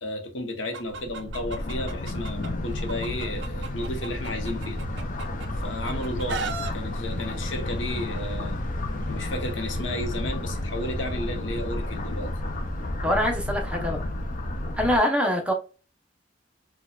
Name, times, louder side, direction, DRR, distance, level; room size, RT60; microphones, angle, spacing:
voice 1, 0.0-4.8 5.6-8.6 9.1-12.3, left 1 dB, 85° left, 0.8 m, -33 dB
Chicken rooster, 0.7-2.5 2.9-5.5 5.8-6.7, right 4 dB, 65° right, 0.5 m, -35 dB
sound 1, 0.9-15.0, left 1 dB, 45° left, 0.4 m, -31 dB
voice 2, 13.0-14.0 14.8-15.5, left 1 dB, 5° right, 0.6 m, -24 dB
4.2 x 2.2 x 2.2 m
head